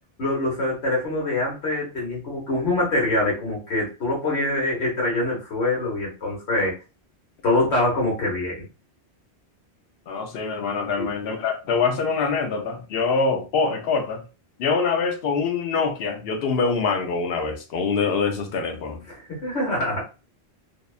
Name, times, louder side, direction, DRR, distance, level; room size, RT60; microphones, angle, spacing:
voice 1, 0.2-6.7 7.4-8.6 11.0-11.1 19.1-20.0, left 2 dB, 85° left, 1.3 m, -24 dB
voice 2, 10.1-14.2 14.6-19.0, left 4 dB, 70° left, 0.8 m, -24 dB
2.7 x 2.1 x 2.3 m
omnidirectional pair, 1.1 m